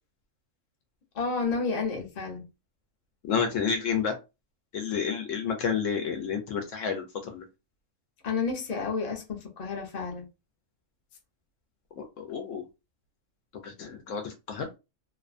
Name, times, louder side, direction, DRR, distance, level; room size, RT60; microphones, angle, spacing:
voice 1, 1.1-2.5 8.2-10.3, left 4 dB, 40° left, 0.6 m, -31 dB
voice 2, 3.3-4.2 4.7-7.4 12.0-12.6 13.6-14.7, left 6 dB, 70° left, 0.9 m, -30 dB
2.7 x 2.1 x 2.4 m
omnidirectional pair, 1.5 m